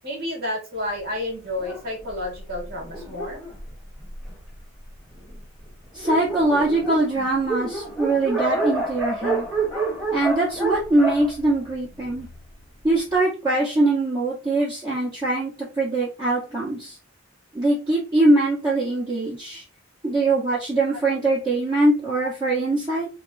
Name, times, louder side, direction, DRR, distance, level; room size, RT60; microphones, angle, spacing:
voice 1, 0.0-3.4, left 1 dB, 55° right, 1 dB, 1.6 m, -30 dB
Dog, 1.6-4.6 5.3-5.4 5.6-5.7 5.9-12.3, right 3 dB, ahead, 1.5 m, -29 dB
voice 2, 5.9-9.5 10.1-12.3 12.8-17.0 17.5-19.6 20.0-23.1, right 2 dB, 20° right, -9 dB, 1.3 m, -22 dB
3.5 x 2.2 x 4.0 m, 0.32 s
head